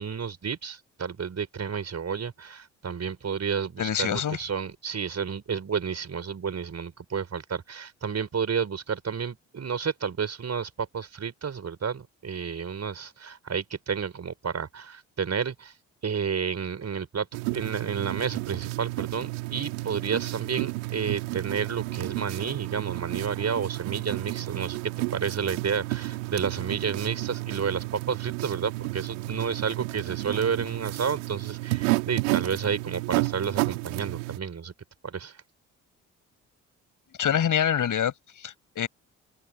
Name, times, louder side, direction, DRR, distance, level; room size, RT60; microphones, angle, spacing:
voice 1, 0.0-15.7 16.0-34.7 35.0-35.4, right 6 dB, 45° right, 5.7 m, -31 dB
voice 2, 3.8-4.4 37.2-38.9, left 9 dB, 55° left, 6.5 m, -26 dB
sound 1, 17.3-34.4, right 25 dB, 80° right, 2.4 m, -32 dB
open air
hypercardioid pair, 45°, 38 cm